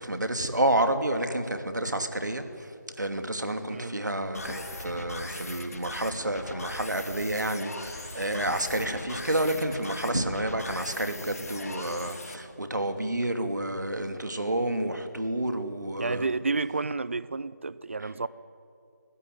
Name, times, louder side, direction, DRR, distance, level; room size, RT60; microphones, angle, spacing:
voice 1, 0.0-2.7 3.0-16.3, right 1 dB, 75° right, 7 dB, 2.7 m, -29 dB
sound 1, 4.3-12.3, left 2 dB, 55° left, 3.3 m, -39 dB
voice 2, 16.0-18.3, right 3 dB, 40° right, 18 dB, 0.7 m, -30 dB
25.0 x 16.0 x 9.8 m, 2.5 s
figure-of-eight pair, 165°, 10 cm